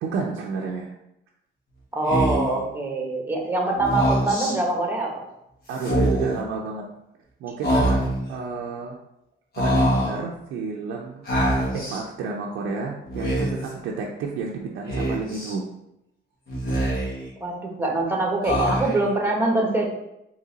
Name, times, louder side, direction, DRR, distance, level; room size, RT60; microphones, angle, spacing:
voice 1, 0.0-0.9 5.7-6.9 7.4-9.0 9.6-11.3 11.7-15.7, right 4 dB, 85° right, -1 dB, 0.5 m, -31 dB
voice 2, 1.9-5.2 17.4-19.9, right 2 dB, 10° right, 0 dB, 1.1 m, -24 dB
Speech, 2.1-2.6 3.8-4.5 5.7-6.4 7.6-8.3 9.5-10.2 11.3-12.0 13.0-13.7 14.9-15.5 16.5-17.3 18.4-19.1, right 1 dB, 50° left, 1.5 m, -24 dB
3.8 x 2.9 x 4.0 m, 0.84 s
cardioid pair, 90°, 20 cm